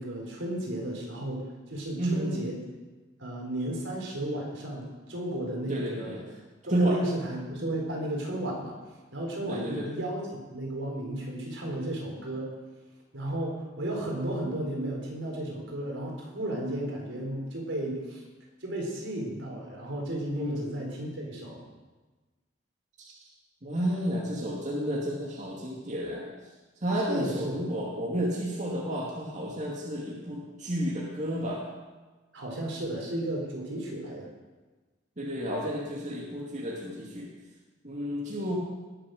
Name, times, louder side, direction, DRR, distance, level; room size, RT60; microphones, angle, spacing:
voice 1, 0.0-2.6 3.2-6.4 6.6-8.8 9.1-10.2 10.5-12.5 13.1-18.2 18.6-21.6 27.1-27.6 32.3-34.3, right 1 dB, 75° right, -1 dB, 4.5 m, -34 dB
voice 2, 2.0-2.4 5.7-6.2 6.7-7.0 9.5-9.9 20.4-20.6 23.6-26.2 26.8-31.6 35.2-37.3 37.8-38.6, right 1 dB, 40° right, -4 dB, 2.4 m, -31 dB
20.5 x 7.4 x 6.6 m, 1.3 s
head